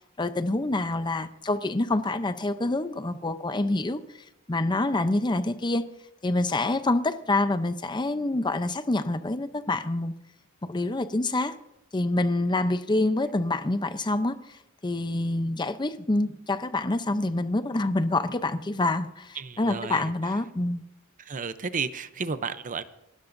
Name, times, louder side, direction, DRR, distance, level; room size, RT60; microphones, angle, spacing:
voice 1, 0.2-4.0 4.5-5.8 6.2-10.1 10.6-11.5 11.9-14.3 14.8-20.8, left 2 dB, 20° left, 0.7 m, -26 dB
voice 2, 19.3-20.4 21.2-22.8, right 5 dB, 40° right, 0.7 m, -33 dB
28.5 x 13.0 x 2.6 m
head